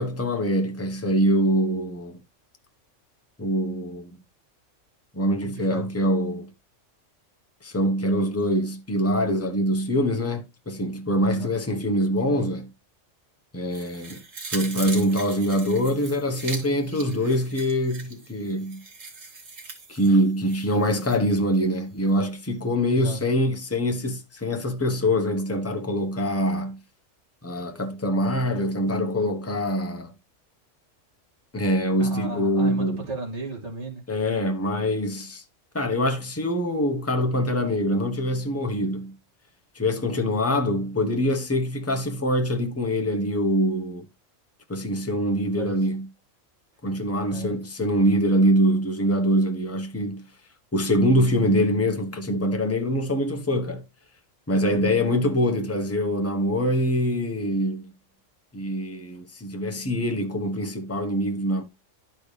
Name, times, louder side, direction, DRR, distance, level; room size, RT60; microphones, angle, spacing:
voice 1, 0.0-2.2 3.4-4.1 5.1-6.5 7.6-12.7 13.5-14.2 14.5-18.8 19.9-26.8 27.4-30.1 31.5-33.0 34.1-35.4 35.7-39.1 39.7-44.0 44.7-46.1 46.8-50.3 50.7-53.8 54.5-57.8 58.5-61.6, equal, 10° left, 1.0 m, -24 dB
voice 2, 5.4-5.9 11.3-11.5 22.9-23.2 32.0-34.0 45.3-45.9 47.3-47.6 54.7-54.9, right 3 dB, 60° right, 2.7 m, -35 dB
sound 1, 13.7-21.2 21.5-21.6, right 3 dB, 85° right, 2.0 m, -40 dB
11.5 x 4.4 x 3.3 m
omnidirectional pair, 1.3 m